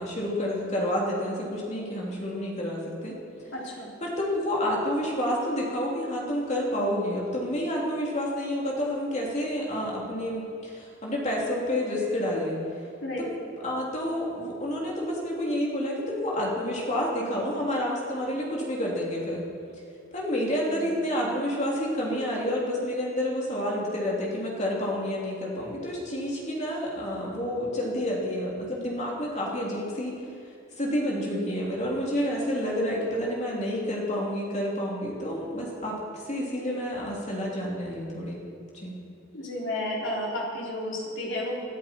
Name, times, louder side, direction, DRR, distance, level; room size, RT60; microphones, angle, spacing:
voice 1, 0.0-3.2 4.0-12.5 13.2-13.3 13.6-19.4 20.1-30.2 30.8-38.4 38.7-38.9, equal, 35° left, -4 dB, 3.3 m, -29 dB
voice 2, 3.5-3.9 13.0-13.2 20.3-20.9 39.3-41.5, left 1 dB, 65° left, -3 dB, 3.8 m, -32 dB
21.0 x 13.0 x 4.6 m, 2.4 s
head